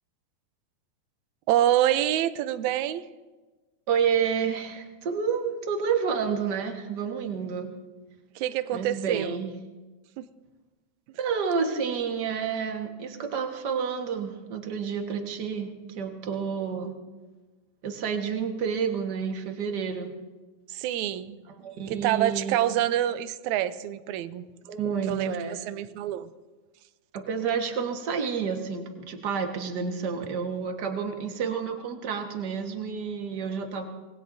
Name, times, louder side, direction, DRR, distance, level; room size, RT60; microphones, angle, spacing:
voice 1, 1.5-3.0 8.4-9.4 10.2-10.3 20.7-24.5 25.1-26.3, right 12 dB, 80° right, 13 dB, 2.0 m, -27 dB
voice 2, 3.9-7.8 8.7-9.5 11.2-16.9 17.8-20.1 21.6-22.6 24.7-25.6 27.1-33.8, right 6 dB, 45° right, 3 dB, 1.7 m, -29 dB
26.0 x 19.5 x 2.7 m, 1.2 s
omnidirectional pair, 3.5 m